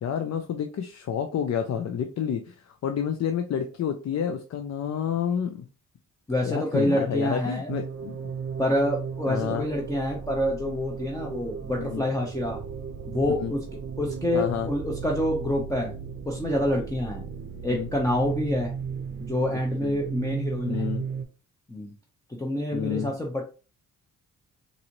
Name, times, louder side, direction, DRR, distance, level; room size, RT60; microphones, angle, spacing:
voice 1, 0.0-5.7 6.4-8.2 9.3-9.7 11.8-12.0 13.4-13.5 14.3-14.7 17.5-17.9 19.8-20.0 20.7-21.0 22.7-23.1, left 8 dB, 50° left, 6 dB, 0.5 m, -29 dB
voice 2, 6.3-7.7 8.6-12.6 13.1-13.6 14.0-15.9 16.3-17.2 17.6-18.7 19.2-20.8 21.7-21.9 22.3-23.4, left 1 dB, 10° left, -1 dB, 0.7 m, -27 dB
sound 1, 7.7-21.3, right 6 dB, 35° right, 0.7 m, -35 dB
4.0 x 2.7 x 2.9 m, 0.34 s
cardioid pair, 80°, 33 cm